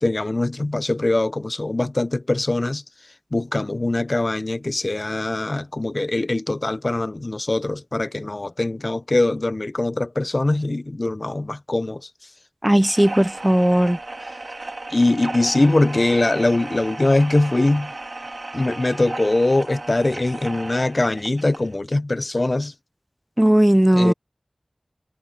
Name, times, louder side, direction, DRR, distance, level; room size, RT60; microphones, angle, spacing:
voice 1, 0.0-2.8 3.3-12.1 14.9-17.9 18.5-22.7 23.9-24.1, left 2 dB, 55° left, 0.7 m, -22 dB
voice 2, 12.6-14.0 23.4-24.1, right 1 dB, 15° right, 0.5 m, -16 dB
sound 1, 12.8-21.7, right 2 dB, 70° right, 2.9 m, -35 dB
wide cardioid pair, 45°, 0 cm